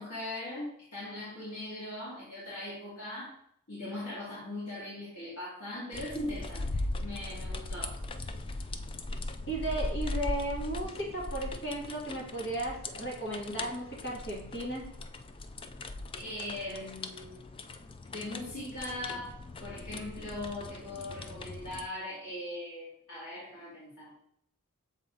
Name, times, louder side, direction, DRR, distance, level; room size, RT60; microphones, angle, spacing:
voice 1, 0.0-3.3 3.7-8.0 16.2-17.4 18.1-19.3 19.6-24.1, left 1 dB, 85° left, -8 dB, 2.3 m, -40 dB
sound 1, 5.9-21.9, left 2 dB, 25° left, 0.3 m, -39 dB
voice 2, 9.5-14.9, right 1 dB, 50° left, -3 dB, 2.1 m, -35 dB
7.0 x 4.2 x 3.8 m, 0.69 s
head